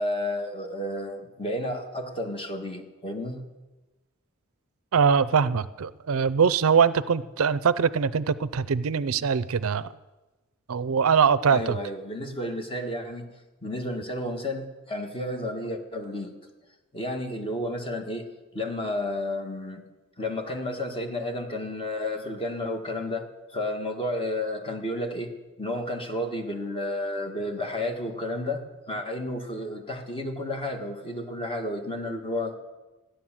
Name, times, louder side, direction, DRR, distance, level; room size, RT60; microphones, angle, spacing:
voice 1, 0.0-3.4 6.8-6.9 11.5-13.3 13.6-16.3 16.9-18.3 18.5-19.8 20.2-25.3 25.6-32.5, left 1 dB, 25° left, 4 dB, 1.7 m, -31 dB
voice 2, 4.9-9.9 10.7-11.8, right 6 dB, 75° right, 16 dB, 0.5 m, -22 dB
14.5 x 10.5 x 7.4 m, 1.1 s
head